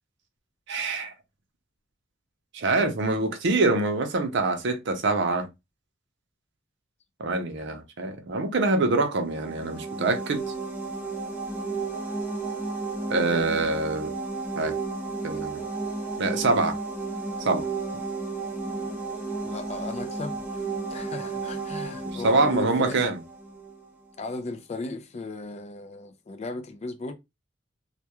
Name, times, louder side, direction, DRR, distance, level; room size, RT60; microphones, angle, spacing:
voice 1, 0.7-1.1 2.5-5.5 7.2-10.5 13.1-14.1 14.6-14.7 15.2-15.6 16.2-16.8 17.4-17.7 22.0-23.2, right 3 dB, 65° right, 0.6 m, -25 dB
sound 1, 9.2-23.9, right 3 dB, 10° right, 0.6 m, -33 dB
voice 2, 19.4-20.6 20.9-23.0 24.2-27.1, left 2 dB, 35° left, 0.4 m, -36 dB
2.2 x 2.2 x 2.8 m
head